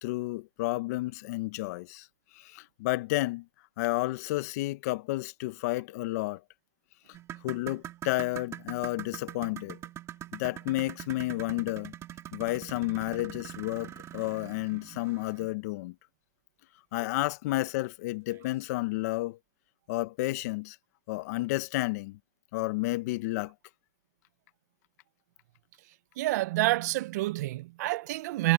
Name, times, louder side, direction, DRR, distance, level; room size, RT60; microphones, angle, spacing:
voice 1, 0.0-2.1 2.3-3.5 3.8-6.4 7.4-9.8 10.3-11.9 12.3-15.9 16.9-19.4 19.9-20.8 21.1-22.2 22.5-23.5, left 19 dB, 70° left, 1.0 m, -31 dB
sound 1, 7.1-15.6 17.0-17.1 17.6-17.7 18.3-18.4, right 12 dB, 30° right, 2.1 m, -44 dB
voice 2, 26.2-28.5, right 18 dB, 75° right, 0.5 m, -28 dB
supercardioid pair, 125°, 9 cm